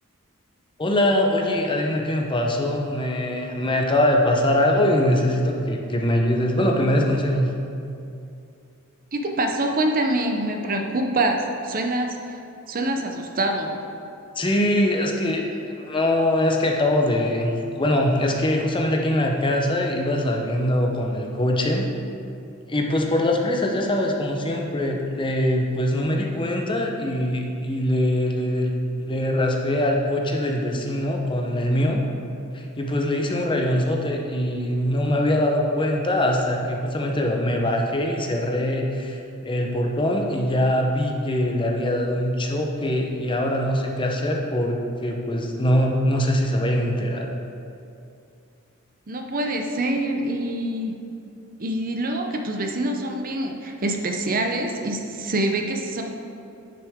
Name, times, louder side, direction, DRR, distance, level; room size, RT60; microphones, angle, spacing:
voice 1, 0.8-7.5 14.4-21.9 22.7-28.7 29.0-32.0 32.5-47.3, left 1 dB, 25° left, 1 dB, 0.7 m, -23 dB
voice 2, 9.1-12.4 12.7-13.7 49.1-51.0 51.6-56.0, right 1 dB, 40° right, 3 dB, 0.7 m, -25 dB
10.0 x 6.1 x 3.6 m, 2.6 s
head